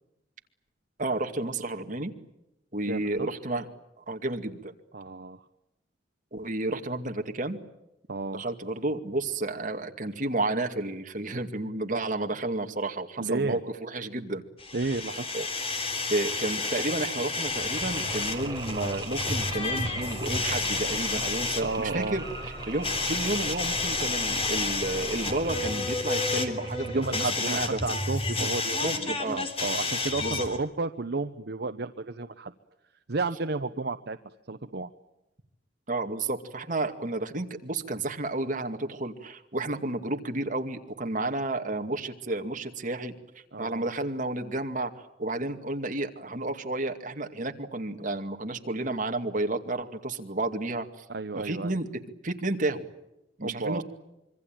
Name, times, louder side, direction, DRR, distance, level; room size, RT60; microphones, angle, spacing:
voice 1, 1.0-2.1 2.7-3.7 4.1-4.7 6.3-7.6 8.3-14.4 15.3-15.5 16.1-22.2 22.7-27.7 28.4-28.5 28.8-29.4 30.2-30.5 35.9-43.1 43.6-51.0 51.4-51.9 52.2-52.8 53.4-53.8, right 2 dB, 45° right, 5 dB, 2.3 m, -31 dB
voice 2, 2.9-3.3 4.9-5.5 8.1-8.4 13.2-13.6 14.7-15.3 21.6-22.2 26.9-32.5 33.1-34.2 34.5-34.9 43.5-43.9 51.1-51.8 53.4-53.8, right 3 dB, 65° right, 10 dB, 0.9 m, -32 dB
sound 1, 14.6-30.6, left 3 dB, 35° left, 3.4 m, -31 dB
Mechanisms, 17.5-27.2, right 2 dB, 25° right, 4.2 m, -39 dB
26.0 x 24.0 x 9.0 m, 0.89 s
head